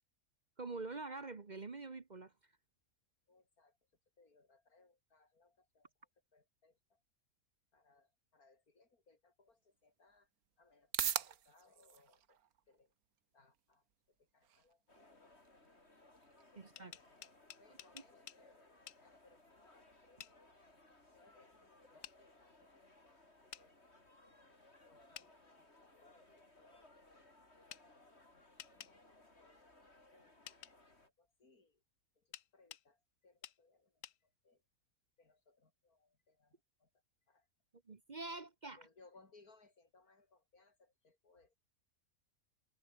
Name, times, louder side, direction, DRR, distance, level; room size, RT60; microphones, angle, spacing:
voice 1, 0.6-2.3 16.6-17.0 17.9-18.0 37.9-38.8, right 3 dB, 35° right, 1.1 m, -46 dB
voice 2, 3.3-3.8 4.2-7.0 7.7-10.3 10.6-12.4 12.7-12.9 13.3-13.9 14.2-15.3 16.5-20.5 21.1-23.7 24.8-26.8 27.6-29.7 30.1-31.8 32.2-34.6 35.2-36.9 37.3-37.5 38.8-41.6, left 3 dB, 90° left, 4.2 m, -69 dB
Can Pop, 9.5-26.4, right 9 dB, 80° right, 1.6 m, -50 dB
sound 1, 14.9-31.1, left 2 dB, 45° left, 5.3 m, -64 dB
sound 2, 16.6-18.4 18.9-19.0 20.2-20.4 22.0-22.2 23.5-23.7 25.1-25.3 27.7-27.8 28.6-28.9 30.5-30.7 32.3-32.9 33.4-33.6 34.0-34.2, left 10 dB, 65° left, 1.2 m, -52 dB
omnidirectional pair, 1.5 m